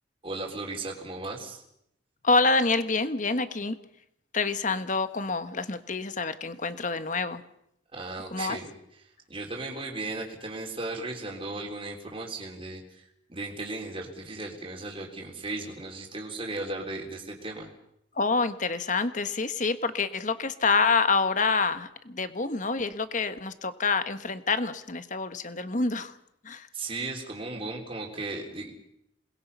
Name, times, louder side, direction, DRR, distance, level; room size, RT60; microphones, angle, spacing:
voice 1, 0.2-1.6 7.9-8.7 9.3-17.7 26.7-28.7, right 2 dB, 30° right, -1 dB, 3.8 m, -36 dB
voice 2, 2.2-3.8 4.3-7.4 8.3-8.6 18.1-26.1 26.4-26.7, left 4 dB, 40° left, 11 dB, 1.4 m, -27 dB
28.0 x 21.5 x 5.6 m, 0.76 s
head